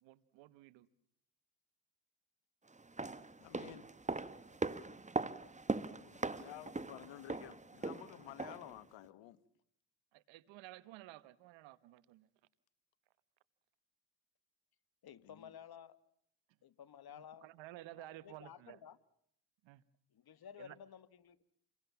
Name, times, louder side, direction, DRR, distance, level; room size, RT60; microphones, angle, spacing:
voice 1, 0.0-0.9 10.1-12.3 17.1-18.8 19.6-19.8 20.6-20.8, right 16 dB, 85° right, 1.3 m, -54 dB
sound 1, 2.8-8.8 9.0-9.1, right 3 dB, 15° right, 1.5 m, -40 dB
voice 2, 3.4-3.9 5.9-9.4 15.2-15.5, left 15 dB, 85° left, 1.5 m, -52 dB
voice 3, 15.0-16.0 16.6-17.5 18.0-19.0 20.1-21.4, left 8 dB, 55° left, 1.8 m, -54 dB
28.5 x 23.0 x 7.1 m
supercardioid pair, 65°, 44 cm